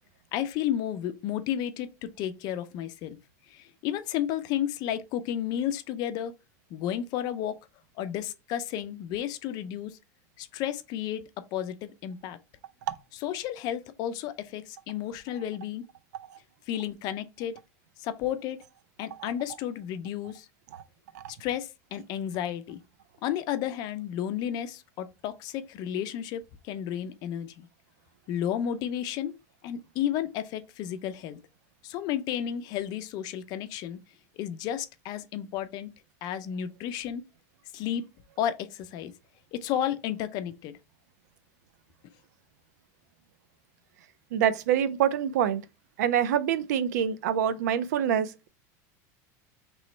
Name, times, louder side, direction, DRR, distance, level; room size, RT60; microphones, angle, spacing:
voice 1, 0.3-3.2 3.5-6.3 6.7-7.6 8.0-10.0 10.4-11.2 11.5-12.4 13.2-15.8 16.7-17.6 18.0-18.6 19.0-20.5 21.4-22.8 23.2-27.7 28.3-29.3 29.6-31.4 31.8-34.0 34.4-35.9 36.2-37.2 37.7-38.0 38.4-39.1 39.5-40.7, left 10 dB, 50° left, 0.5 m, -32 dB
voice 2, 44.3-45.6 46.0-48.5, right 9 dB, 90° right, 0.5 m, -26 dB
3.1 x 3.0 x 4.3 m
supercardioid pair, 145°, 9 cm